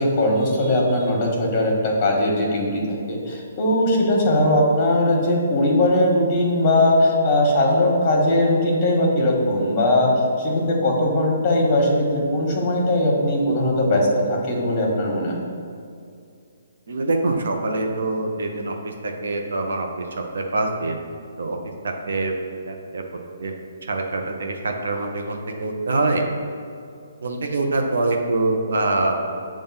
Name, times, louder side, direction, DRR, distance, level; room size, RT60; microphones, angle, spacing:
voice 1, 0.0-15.4, left 1 dB, 30° left, -2 dB, 1.3 m, -20 dB
voice 2, 16.9-19.9 20.3-21.0 21.4-21.6 22.1-22.3 22.7-23.0 23.4-23.5 23.9-26.2 27.2-29.2, right 2 dB, 75° right, 2 dB, 0.8 m, -24 dB
6.9 x 2.6 x 5.5 m, 2.4 s
hypercardioid pair, 155°, 0 cm